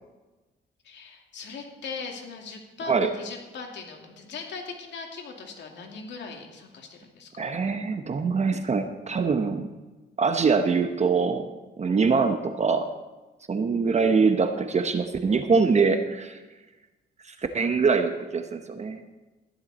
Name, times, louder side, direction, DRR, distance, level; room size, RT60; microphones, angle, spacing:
voice 1, 0.8-7.5, left 4 dB, 65° left, 2 dB, 2.5 m, -39 dB
voice 2, 7.4-9.7 10.2-11.5 11.8-12.9 13.5-16.4 17.3-19.0, right 5 dB, 35° right, 7 dB, 1.0 m, -23 dB
14.0 x 11.0 x 4.2 m, 1.2 s
cardioid pair, 90°, 20 cm